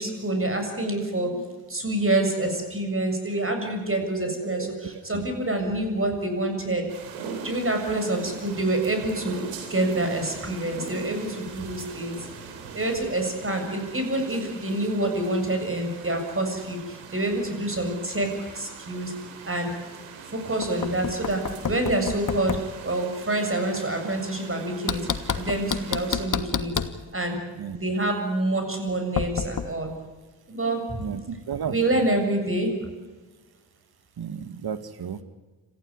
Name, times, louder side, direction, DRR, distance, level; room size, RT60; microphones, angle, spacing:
voice 1, 0.0-6.8 7.4-9.4 9.7-12.2 12.7-19.1 19.5-19.7 20.3-22.6 22.8-25.1 25.3-26.7 27.1-27.4 27.7-29.9 30.5-31.0 31.6-32.7, right 1 dB, 30° right, 4 dB, 7.3 m, -27 dB
sound 1, 6.9-26.3, right 5 dB, 85° right, 3.7 m, -42 dB
Knock, 20.6-22.7 24.9-27.0 29.2-29.7, left 6 dB, 40° left, 1.6 m, -29 dB
voice 2, 31.0-32.0 34.2-35.2, right 7 dB, 55° right, 11 dB, 2.0 m, -33 dB
26.5 x 15.5 x 9.8 m, 1.3 s
hypercardioid pair, 45°, 46 cm